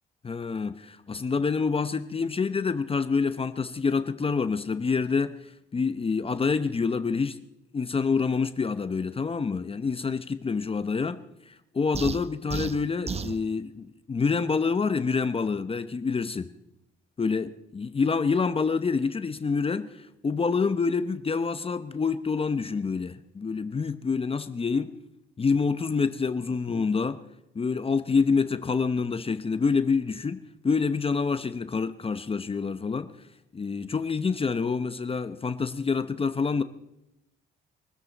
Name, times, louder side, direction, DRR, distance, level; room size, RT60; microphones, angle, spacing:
voice 1, 0.2-5.4 5.7-7.4 7.7-11.2 11.5-16.5 17.2-24.9 25.4-27.2 27.5-33.1 33.5-36.6, left 5 dB, 30° left, 0.8 m, -27 dB
sound 1, 11.9-13.4, right 5 dB, 30° right, 0.7 m, -33 dB
23.5 x 13.0 x 4.1 m
cardioid pair, 90°, 20 cm